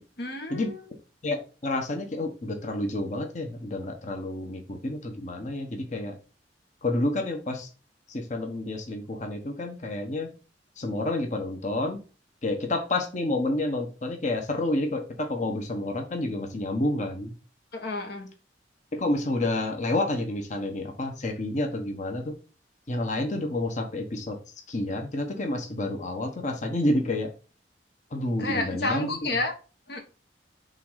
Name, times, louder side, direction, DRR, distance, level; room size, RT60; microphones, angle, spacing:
voice 1, 0.2-0.9 17.7-18.3 28.4-29.5 29.9-30.0, left 2 dB, 65° left, 4 dB, 1.6 m, -30 dB
voice 2, 1.2-6.2 6.8-7.7 8.1-10.3 10.8-12.0 12.4-17.3 18.9-22.4 22.9-24.4 24.7-27.3 28.1-29.4, left 2 dB, 45° left, 4 dB, 1.2 m, -29 dB
5.6 x 3.7 x 5.6 m, 0.34 s
head